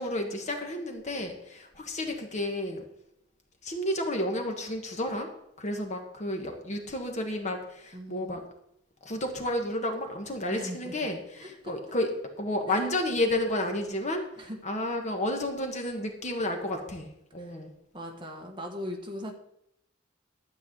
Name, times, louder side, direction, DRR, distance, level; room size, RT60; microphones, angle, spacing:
voice 1, 0.0-2.8 3.6-5.3 5.6-8.4 9.0-12.1 12.4-17.7, left 1 dB, 35° left, 3 dB, 1.4 m, -31 dB
voice 2, 7.9-8.4 10.5-11.0 11.6-11.7 12.7-12.9 14.4-14.6 17.4-17.6 17.9-19.3, equal, 25° right, 2 dB, 1.4 m, -39 dB
12.0 x 4.7 x 7.8 m, 0.78 s
head